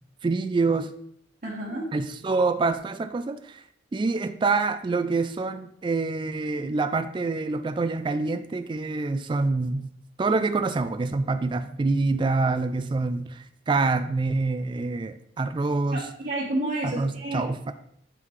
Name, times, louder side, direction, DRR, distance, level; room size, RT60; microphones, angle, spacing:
voice 1, 0.2-0.9 1.9-3.6 3.9-9.9 10.2-16.0 16.8-17.7, right 3 dB, 25° right, 10 dB, 0.3 m, -26 dB
voice 2, 1.4-1.9 15.9-17.7, right 1 dB, 45° right, -5 dB, 1.2 m, -31 dB
8.2 x 3.7 x 4.6 m, 0.69 s
head